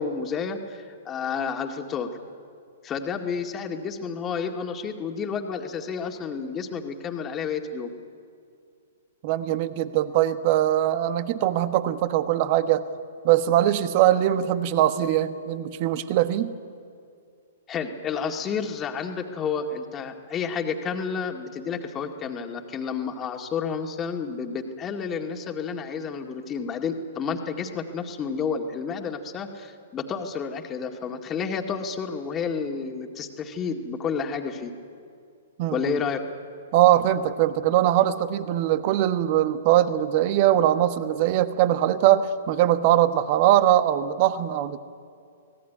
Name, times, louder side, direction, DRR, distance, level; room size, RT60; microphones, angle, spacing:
voice 1, 0.0-2.1 2.8-7.9 17.7-34.7 35.7-36.2, left 6 dB, 25° left, 4 dB, 2.2 m, -30 dB
voice 2, 9.2-12.8 13.2-16.5 35.6-36.0 36.7-44.8, right 12 dB, 45° right, 11 dB, 1.3 m, -21 dB
25.0 x 18.0 x 9.5 m, 2.4 s
figure-of-eight pair, 115°, 0 cm